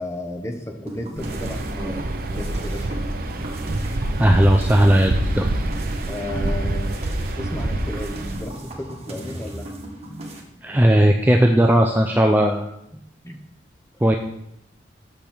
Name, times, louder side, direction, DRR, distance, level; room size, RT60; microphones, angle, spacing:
voice 1, 0.0-3.0 6.1-6.9 7.4-9.7 12.9-13.4, left 1 dB, 15° left, 3 dB, 0.9 m, -33 dB
sound 1, 0.9-10.4, right 1 dB, 35° right, 1.4 m, -37 dB
Waves surf, 1.2-8.5, right 1 dB, 50° right, 0.7 m, -26 dB
voice 2, 4.2-5.5 10.6-12.6 14.0-14.2, right 1 dB, 10° right, 2 dB, 0.4 m, -16 dB
7.2 x 5.2 x 6.0 m, 0.79 s
head